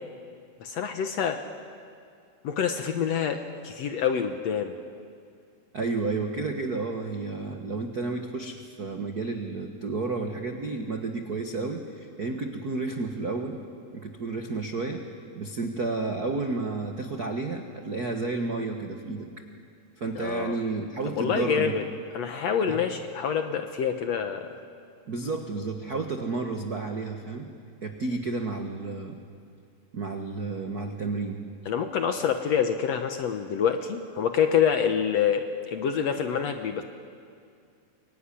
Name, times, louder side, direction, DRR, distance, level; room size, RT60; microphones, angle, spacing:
voice 1, 0.6-1.4 2.4-4.8 20.1-20.6 21.1-21.8 22.1-24.6 31.6-36.8, left 7 dB, 65° left, 6 dB, 1.7 m, -26 dB
voice 2, 5.7-13.6 13.9-15.1 15.3-19.3 20.0-21.8 22.7-22.8 25.1-27.5 27.8-29.2 29.9-31.4, right 3 dB, 85° right, 4 dB, 0.8 m, -31 dB
24.0 x 23.0 x 10.0 m, 2.3 s
omnidirectional pair, 4.1 m